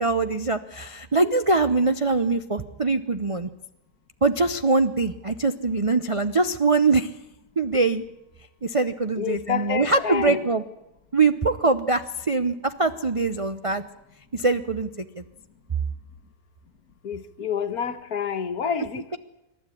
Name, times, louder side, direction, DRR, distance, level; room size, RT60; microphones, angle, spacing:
voice 1, 0.0-3.5 4.2-7.1 7.6-8.0 8.6-10.6 11.1-13.8 14.3-15.2, right 3 dB, 45° right, 0.4 m, -23 dB
voice 2, 9.2-10.5 17.0-19.2, left 7 dB, 60° left, 1.7 m, -28 dB
27.0 x 12.5 x 9.9 m
omnidirectional pair, 1.8 m